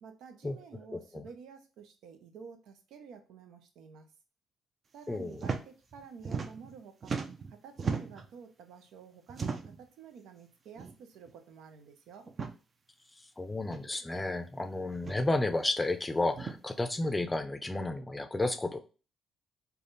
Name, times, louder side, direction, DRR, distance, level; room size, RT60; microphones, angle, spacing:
voice 1, 0.0-4.1 4.9-7.2 7.6-12.3, right 6 dB, 85° right, 6 dB, 0.6 m, -51 dB
voice 2, 0.9-1.3 5.1-5.4 13.4-18.8, left 2 dB, 15° left, 7 dB, 0.5 m, -32 dB
sound 1, 5.3-5.6 5.9-6.8 7.0-8.3 9.3-9.8 10.8-10.9 11.3-11.4 12.2-12.5 13.7-13.8 14.9-15.2 16.3-16.6, right 5 dB, 40° right, 0.5 m, -36 dB
3.5 x 2.3 x 3.9 m, 0.35 s
cardioid pair, 90°, 0 cm